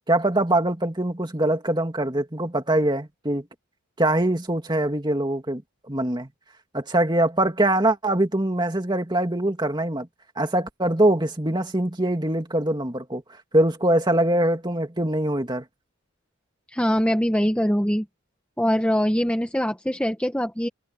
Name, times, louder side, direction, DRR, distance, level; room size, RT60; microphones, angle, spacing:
voice 1, 0.1-3.4 4.0-5.6 5.9-6.3 6.7-10.1 10.4-13.2 13.5-15.6, right 1 dB, 20° right, 2.4 m, -23 dB
voice 2, 16.7-18.1 18.6-20.7, equal, 5° left, 1.2 m, -23 dB
head